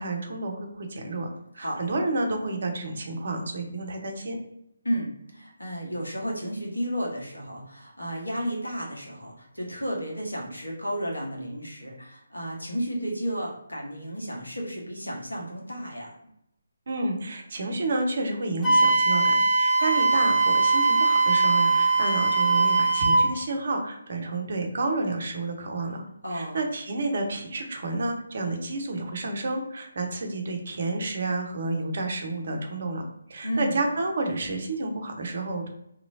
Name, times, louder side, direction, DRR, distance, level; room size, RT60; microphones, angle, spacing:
voice 1, 0.0-4.4 16.9-26.0 26.3-35.7, right 2 dB, 50° right, 3 dB, 0.7 m, -30 dB
voice 2, 4.8-16.1 26.2-26.6 33.4-33.8, equal, 85° left, -3 dB, 1.3 m, -32 dB
Wind instrument woodwind instrument, 18.6-23.3, right 3 dB, 10° left, 0.8 m, -21 dB
3.0 x 2.9 x 2.7 m, 0.79 s
figure-of-eight pair, 145°, 0 cm